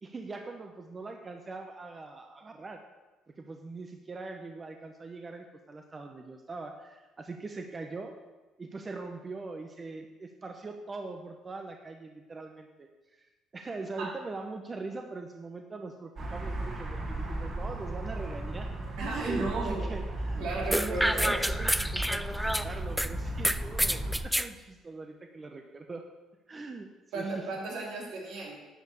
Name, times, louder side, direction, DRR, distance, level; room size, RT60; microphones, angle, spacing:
voice 1, 0.0-2.8 3.3-8.2 8.6-13.3 13.5-18.8 19.1-26.1 26.5-26.9 27.1-27.2, right 3 dB, 30° right, 4 dB, 0.9 m, -42 dB
sound 1, 16.2-24.2, right 1 dB, 55° right, 2.8 m, -35 dB
voice 2, 19.0-19.9 20.4-21.4 27.1-28.6, right 3 dB, 80° right, -3 dB, 3.1 m, -34 dB
sound 2, 20.7-23.1 23.4-24.5, equal, 5° right, 0.4 m, -28 dB
9.9 x 5.4 x 7.0 m, 1.2 s
supercardioid pair, 80°, 0 cm